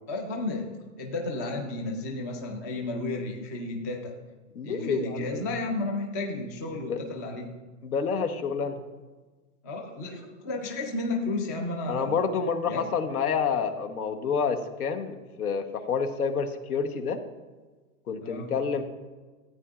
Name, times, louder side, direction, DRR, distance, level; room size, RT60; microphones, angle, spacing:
voice 1, 0.1-0.7 1.0-4.1 4.6-7.5 9.6-12.2 12.7-12.8 18.2-18.5, left 2 dB, 15° left, 2 dB, 0.3 m, -32 dB
voice 2, 4.5-5.5 6.9-7.0 7.8-8.8 11.9-17.2 18.1-18.9, left 6 dB, 80° left, 7 dB, 1.2 m, -28 dB
13.5 x 8.5 x 2.4 m, 1.3 s
hypercardioid pair, 135°, 44 cm